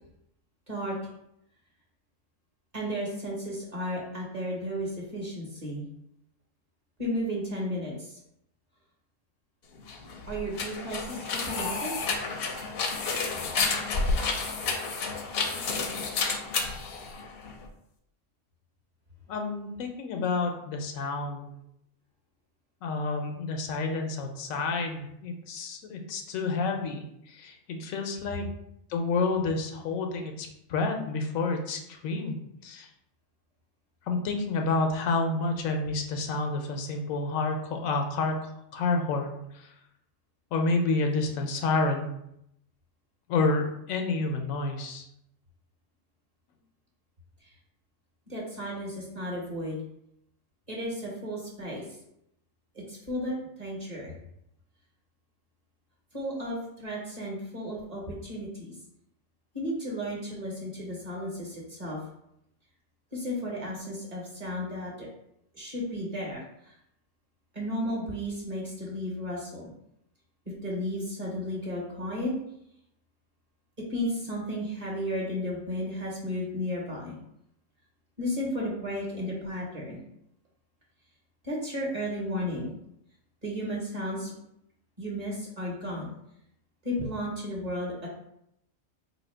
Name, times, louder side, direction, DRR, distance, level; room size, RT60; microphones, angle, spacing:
voice 1, 2.7-5.9 7.0-8.1 10.3-11.9 48.3-49.8 50.7-51.8 52.9-54.1 56.1-58.7 59.5-62.0 63.1-65.1 65.5-66.7 67.5-69.7 70.6-72.3 73.9-77.1 78.2-80.0 81.4-82.7 83.4-84.3 85.0-86.1 86.8-88.1, equal, 35° right, -4 dB, 1.0 m, -33 dB
sound 1, 9.8-17.7, left 4 dB, 60° left, 0.7 m, -30 dB
voice 2, 19.3-21.5 22.8-28.5 28.9-32.4 32.6-32.9 34.1-39.7 40.5-42.1 43.3-45.1, left 3 dB, 85° left, 4 dB, 1.0 m, -29 dB
2.8 x 2.7 x 4.3 m, 0.78 s
omnidirectional pair, 1.4 m